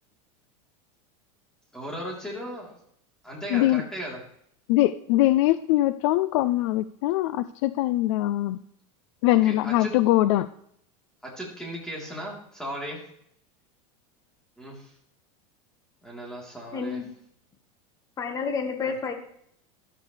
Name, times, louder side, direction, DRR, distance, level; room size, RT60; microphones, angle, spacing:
voice 1, 1.7-2.7 3.2-4.2 9.3-9.9 11.2-13.0 14.6-14.9 16.0-17.0 18.8-18.9, equal, 5° left, -3 dB, 3.5 m, -36 dB
voice 2, 3.5-3.9 4.7-8.6 9.2-10.5, left 15 dB, 55° left, 14 dB, 0.5 m, -22 dB
voice 3, 16.7-17.1 18.2-19.1, left 5 dB, 20° left, 4 dB, 1.4 m, -29 dB
13.5 x 12.5 x 3.3 m, 0.70 s
supercardioid pair, 160°, 18 cm